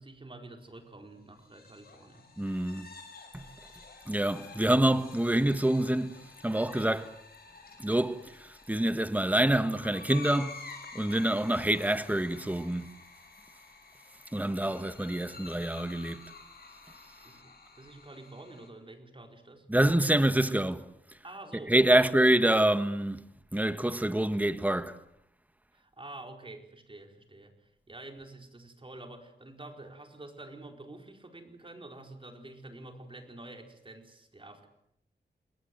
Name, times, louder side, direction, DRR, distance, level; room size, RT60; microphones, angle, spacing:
voice 1, 0.0-2.3 17.2-19.7 21.2-22.2 25.7-34.7, right 2 dB, 30° right, 4.6 m, -48 dB
sound 1, 1.4-18.7, left 4 dB, 55° left, 6.5 m, -50 dB
voice 2, 2.4-2.9 3.3-3.4 4.1-7.1 7.8-10.6 10.9-13.0 14.3-16.2 19.7-20.9 21.7-23.2 23.5-25.0, right 1 dB, 10° right, 1.5 m, -26 dB
29.0 x 20.5 x 7.9 m
wide cardioid pair, 90°, 18 cm